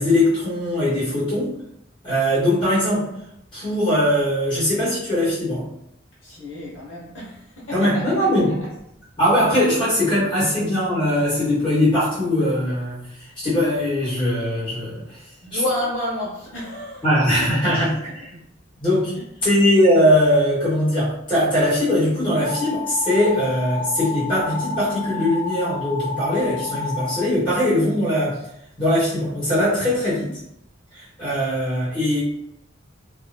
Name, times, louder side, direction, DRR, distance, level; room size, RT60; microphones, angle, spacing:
voice 1, 0.0-1.5 2.0-3.1 3.5-5.6 7.7-8.5 9.2-13.0 13.4-15.2 15.5-15.6 17.0-18.3 18.8-19.1 19.4-28.4 28.8-30.3 30.9-32.2, left 1 dB, 25° left, -11 dB, 1.4 m, -20 dB
voice 2, 6.2-8.1 15.4-17.0 17.4-17.7, left 1 dB, 75° left, -7 dB, 0.9 m, -30 dB
sound 1, 22.4-27.2, left 5 dB, 40° right, 0.8 m, -30 dB
2.7 x 2.2 x 2.6 m, 0.79 s
head